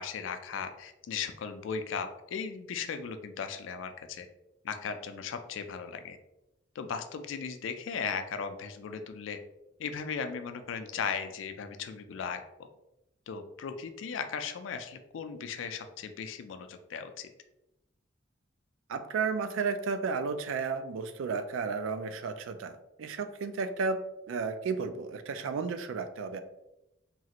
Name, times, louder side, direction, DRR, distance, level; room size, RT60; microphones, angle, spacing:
voice 1, 0.0-4.3 4.6-6.2 6.8-9.4 9.8-12.4 13.3-17.3, left 6 dB, 85° left, 8 dB, 0.3 m, -37 dB
voice 2, 18.9-24.0 24.3-26.4, right 5 dB, 85° right, 10 dB, 0.3 m, -33 dB
3.0 x 2.4 x 2.8 m, 0.92 s
head